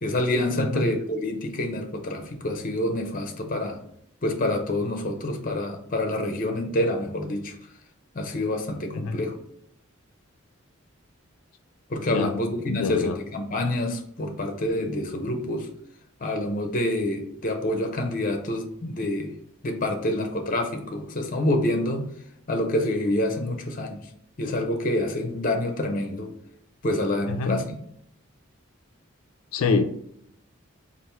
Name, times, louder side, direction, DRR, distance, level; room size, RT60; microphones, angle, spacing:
voice 1, 0.0-3.8 4.2-7.5 8.1-9.3 11.9-15.7 16.2-19.3 19.6-22.1 22.5-24.0 24.4-26.3 26.8-27.7, left 1 dB, 40° left, 4 dB, 0.6 m, -27 dB
voice 2, 0.6-0.9 8.9-9.2 12.1-12.3 12.6-13.2 27.3-27.6 29.5-29.8, left 4 dB, 85° left, 7 dB, 0.4 m, -26 dB
3.4 x 2.5 x 4.3 m, 0.71 s
head